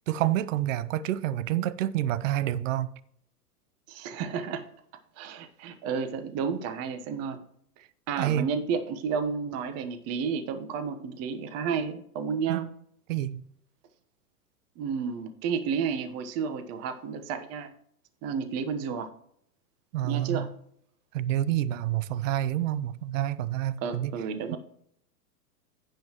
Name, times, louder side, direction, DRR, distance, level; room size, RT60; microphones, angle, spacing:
voice 1, 0.1-2.9 8.2-8.5 12.5-12.6 13.1-13.4 19.9-20.5 21.1-24.1 24.5-24.6, right 12 dB, 55° right, 0.7 m, -28 dB
voice 2, 3.9-4.6 5.2-7.4 8.1-12.7 14.8-17.7 18.2-19.1 20.0-20.5 23.8-24.6, right 6 dB, 30° right, 1.2 m, -31 dB
16.0 x 5.6 x 3.0 m
hypercardioid pair, 125°, 47 cm